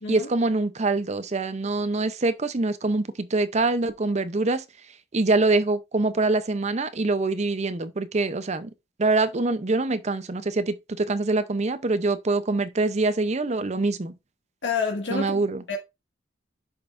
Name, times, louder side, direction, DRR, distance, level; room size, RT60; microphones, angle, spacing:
voice 1, 0.1-4.6 5.1-8.7 9.0-14.1 15.1-15.6, right 3 dB, 40° right, 0.6 m, -24 dB
voice 2, 14.6-15.4 15.7-15.8, left 5 dB, 80° left, 1.8 m, -28 dB
10.5 x 5.4 x 2.5 m
head